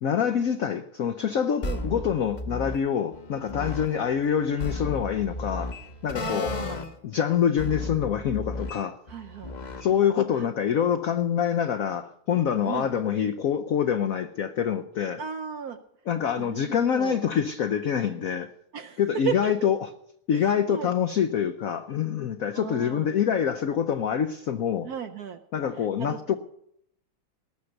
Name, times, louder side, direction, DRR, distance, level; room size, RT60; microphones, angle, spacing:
voice 1, 0.0-5.7 6.0-6.5 7.0-9.0 9.8-15.2 16.1-18.5 19.0-19.9 20.3-24.9 25.5-26.4, left 8 dB, 75° left, 0.7 m, -26 dB
sound 1, 1.6-2.9 3.1-6.9 7.5-10.0, left 2 dB, 35° left, 0.7 m, -34 dB
voice 2, 1.6-2.0 6.2-6.8 9.1-9.5 10.3-10.4 12.6-12.9 15.2-15.8 16.4-17.2 18.7-19.0 19.3-19.5 20.7-20.9 22.5-23.0 24.8-25.4 26.0-26.2, right 8 dB, 65° right, 0.9 m, -34 dB
19.0 x 6.5 x 7.9 m
omnidirectional pair, 2.2 m